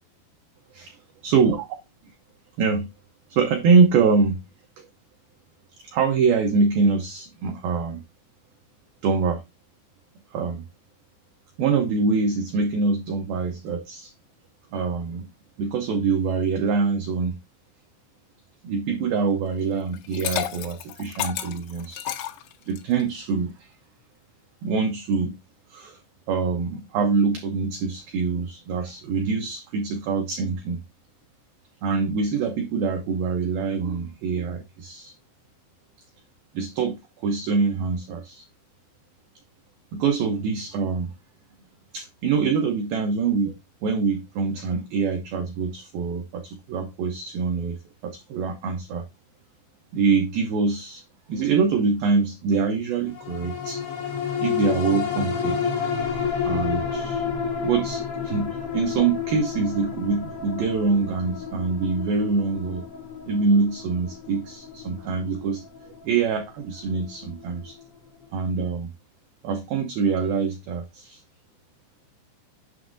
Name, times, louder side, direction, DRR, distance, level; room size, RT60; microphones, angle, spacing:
voice 1, 1.2-1.6 2.6-2.9 3.3-4.4 4.8-4.9 5.8-8.0 9.0-9.4 10.3-10.6 11.6-14.1 14.7-15.3 15.6-17.4 18.6-22.1 22.7-23.7 24.6-25.4 25.7-26.0 26.3-30.8 31.8-35.1 36.5-38.4 39.9-41.1 41.9-43.6 43.8-49.1 49.9-51.0 51.3-53.8 54.4-55.6 56.4-57.3 57.6-62.9 63.3-67.8 68.3-68.9 69.4-71.2, right 5 dB, 85° right, 2.0 m, -24 dB
Liquid, 19.9-23.0, left 12 dB, 80° left, 3.0 m, -31 dB
sound 1, 53.1-67.8 68.2-68.3, left 6 dB, 45° left, 3.5 m, -30 dB
7.7 x 6.0 x 2.5 m
omnidirectional pair, 5.3 m